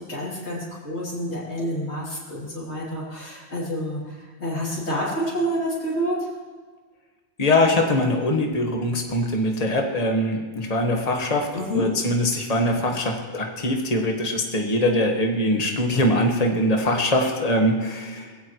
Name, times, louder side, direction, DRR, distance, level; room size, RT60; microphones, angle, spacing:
voice 1, 0.0-6.3 11.5-11.9, equal, 85° left, -8 dB, 3.5 m, -28 dB
voice 2, 7.4-11.5 11.7-18.3, left 1 dB, 35° left, 1 dB, 1.6 m, -22 dB
21.5 x 16.0 x 3.2 m, 1.5 s
omnidirectional pair, 1.1 m